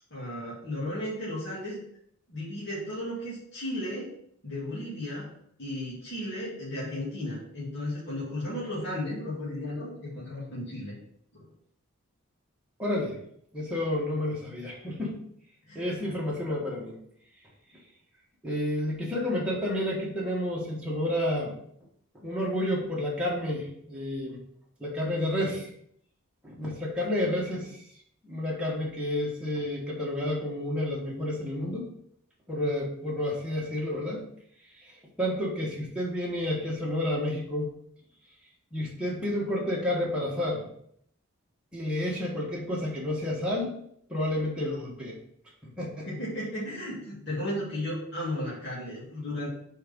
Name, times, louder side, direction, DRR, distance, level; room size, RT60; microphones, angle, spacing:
voice 1, 0.1-1.8 2.3-4.0 4.4-5.3 5.6-10.9 11.4-11.5 15.7-15.8 16.1-16.2 46.1-49.5, left 1 dB, 55° left, -9 dB, 2.4 m, -34 dB
voice 2, 12.8-13.2 13.5-15.2 15.7-17.0 18.4-21.5 22.2-24.4 24.8-25.7 26.4-27.7 28.2-31.9 32.5-34.3 35.2-37.7 38.7-40.7 41.7-43.7 44.1-45.2 45.8-46.1, left 1 dB, 5° right, -6 dB, 1.6 m, -30 dB
4.6 x 4.6 x 5.3 m, 0.68 s
head